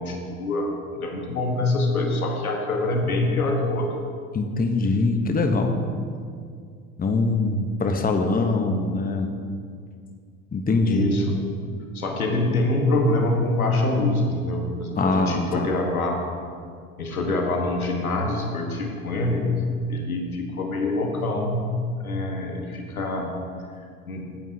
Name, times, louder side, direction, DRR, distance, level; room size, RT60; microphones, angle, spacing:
voice 1, 0.0-3.9 10.8-11.4 11.9-16.3 17.0-19.5 19.9-21.7 22.0-23.3 24.1-24.3, left 2 dB, 85° left, 2 dB, 1.4 m, -25 dB
voice 2, 4.3-5.8 7.0-9.3 10.5-11.1 15.0-15.7, left 3 dB, 20° left, 5 dB, 1.0 m, -23 dB
16.5 x 8.9 x 2.8 m, 2.2 s
figure-of-eight pair, 65°, 42 cm